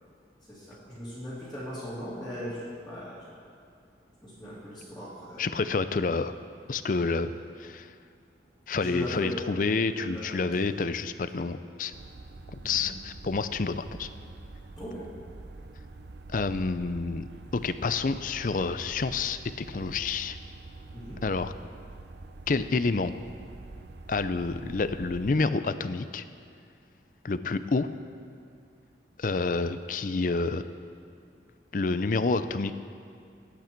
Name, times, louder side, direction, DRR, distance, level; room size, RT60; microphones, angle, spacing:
voice 1, 0.5-3.3 4.2-5.5 8.8-9.4 9.9-10.6 12.6-12.9 14.8-15.1 20.9-21.2, equal, ahead, -14 dB, 2.9 m, -39 dB
voice 2, 5.4-6.3 6.7-7.3 7.6-7.9 8.7-11.9 12.5-14.1 16.3-17.3 17.5-20.4 21.2-21.5 22.5-23.1 24.1-26.2 27.2-27.9 29.2-30.6 31.7-32.7, left 4 dB, 45° left, 12 dB, 0.5 m, -28 dB
sound 1, 11.9-25.3, right 2 dB, 70° right, 0.6 m, -45 dB
20.5 x 8.2 x 4.5 m, 2.4 s
head